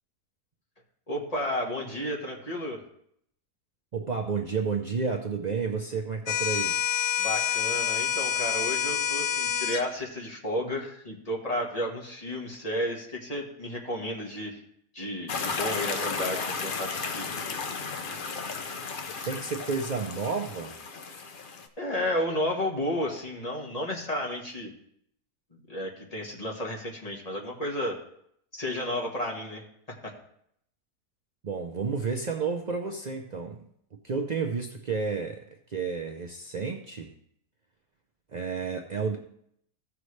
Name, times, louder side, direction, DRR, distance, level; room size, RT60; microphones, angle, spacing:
voice 1, 1.1-2.8 7.2-14.6 14.9-17.3 21.8-24.7 25.5-28.0 28.5-30.1, left 1 dB, 25° left, -1 dB, 1.5 m, -32 dB
voice 2, 3.9-6.8 19.2-20.7 31.4-33.7 34.0-35.4 35.7-37.1 38.3-39.2, right 5 dB, 80° right, 3 dB, 0.3 m, -31 dB
sound 1, 6.3-9.9, left 9 dB, 85° left, 1.2 m, -27 dB
sound 2, 15.3-21.7, left 4 dB, 50° left, 0.6 m, -34 dB
15.0 x 6.0 x 3.2 m, 0.71 s
omnidirectional pair, 1.7 m